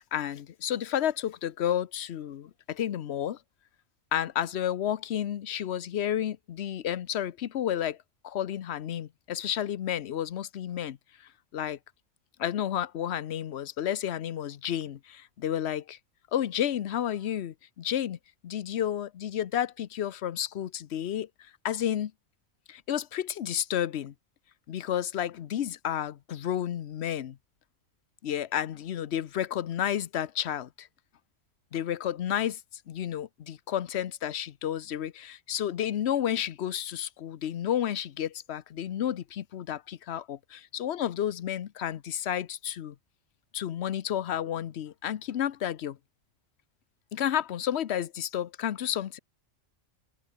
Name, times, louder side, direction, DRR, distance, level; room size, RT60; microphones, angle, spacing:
voice 1, 0.0-3.4 4.1-8.0 8.2-11.0 11.5-11.8 12.4-16.0 16.3-18.2 18.4-22.1 22.7-24.1 24.7-27.4 28.2-30.9 31.7-32.6 32.9-42.9 43.5-46.0 47.1-49.2, left 10 dB, 60° left, 1.0 m, -31 dB
omnidirectional pair, 1.3 m